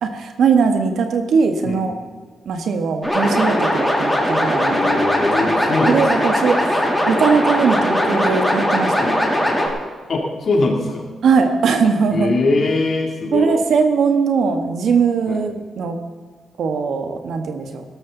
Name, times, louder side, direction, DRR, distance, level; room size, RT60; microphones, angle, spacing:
voice 1, 0.0-1.9 2.4-4.9 5.4-5.5 5.8-8.9 11.2-12.3 13.3-16.0 16.6-17.8, right 5 dB, 75° right, 6 dB, 1.7 m, -19 dB
sound 1, 3.0-9.7, left 1 dB, 5° left, 3.3 m, -19 dB
voice 2, 4.7-6.3 9.0-9.2 10.1-11.1 12.1-13.5 15.3-15.4, left 2 dB, 55° left, 0 dB, 3.2 m, -21 dB
17.5 x 13.0 x 4.1 m, 1.5 s
cardioid pair, 100°, 0 cm